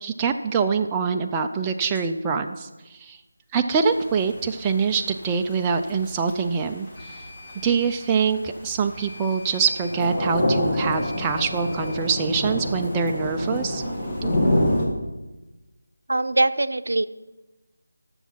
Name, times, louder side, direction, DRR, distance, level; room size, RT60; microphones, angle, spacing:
voice 1, 0.0-3.2 3.5-7.2 7.6-13.8, right 5 dB, 10° right, 3 dB, 0.3 m, -24 dB
sound 1, 2.0-2.1 7.0-8.0 8.9-10.0 10.9-12.0, left 3 dB, 45° left, 2.2 m, -45 dB
Thunder / Rain, 3.7-14.9, left 1 dB, 15° left, 1.4 m, -27 dB
voice 2, 16.1-17.1, right 2 dB, 80° right, 13 dB, 0.6 m, -22 dB
12.5 x 7.0 x 5.7 m, 1.1 s
figure-of-eight pair, 175°, 0 cm